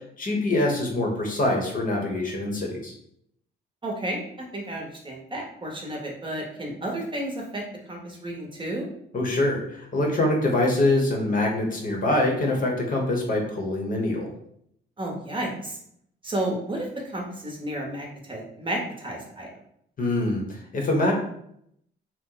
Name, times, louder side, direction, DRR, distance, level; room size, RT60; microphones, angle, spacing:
voice 1, 0.2-2.9 9.1-14.3 20.0-21.1, left 2 dB, 45° left, 0 dB, 0.9 m, -24 dB
voice 2, 3.8-4.2 4.5-8.9 15.0-15.8 16.2-19.5, right 1 dB, 25° right, -1 dB, 0.8 m, -32 dB
2.9 x 2.1 x 3.8 m, 0.71 s
cardioid pair, 90°, 20 cm